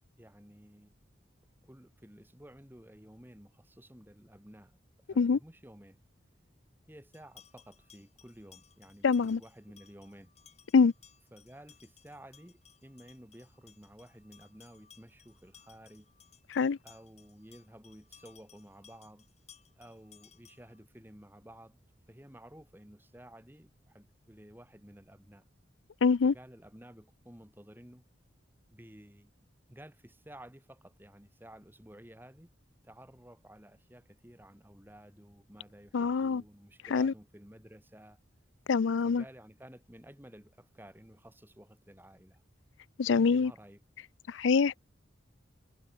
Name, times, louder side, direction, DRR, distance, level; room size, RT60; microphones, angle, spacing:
voice 1, 0.2-0.9 1.6-4.8 5.1-6.0 6.9-10.3 11.3-16.1 16.8-19.3 19.8-21.8 22.1-25.4 26.2-28.0 28.7-29.3 29.7-32.5 32.8-38.2 39.1-42.4 43.1-43.8, right 1 dB, 10° right, 2.2 m, -53 dB
sound 1, 7.1-20.8, left 8 dB, 35° left, 6.3 m, -61 dB
voice 2, 9.0-9.4 10.7-10.9 16.5-16.8 26.0-26.3 35.9-36.4 36.9-37.1 38.7-39.2 43.0-43.5 44.3-44.8, left 5 dB, 85° left, 0.5 m, -25 dB
head